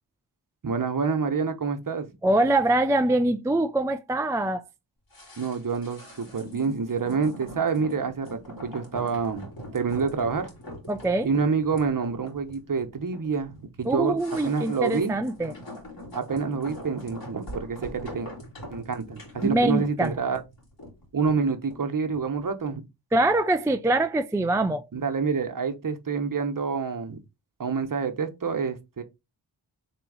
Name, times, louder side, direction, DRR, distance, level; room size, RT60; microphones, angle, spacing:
voice 1, 0.6-2.1 5.4-10.5 11.2-14.2 14.4-15.2 16.1-18.3 18.7-20.4 21.1-22.8 24.9-27.2 27.6-29.0, right 5 dB, 45° right, 1.0 m, -27 dB
voice 2, 2.2-4.6 10.9-11.3 13.9-15.5 19.4-20.1 23.1-24.9, right 2 dB, 5° right, 0.4 m, -23 dB
sound 1, 5.1-22.4 22.7-22.8, equal, 50° left, 2.5 m, -42 dB
3.5 x 3.0 x 4.7 m
cardioid pair, 45°, 47 cm